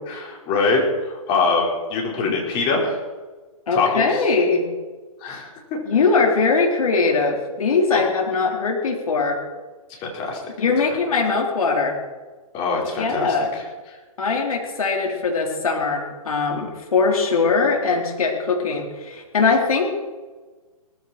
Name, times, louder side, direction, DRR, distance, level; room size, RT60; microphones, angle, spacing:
voice 1, 0.1-3.0 3.7-4.1 5.2-5.5 7.9-8.0 10.0-10.4 12.5-13.5, left 3 dB, 25° left, -1 dB, 5.0 m, -23 dB
voice 2, 3.7-4.7 5.9-9.4 10.6-12.0 13.0-13.5 14.2-19.9, left 4 dB, 70° left, 0 dB, 4.5 m, -21 dB
19.0 x 15.0 x 4.6 m, 1.3 s
hypercardioid pair, 135°, 19 cm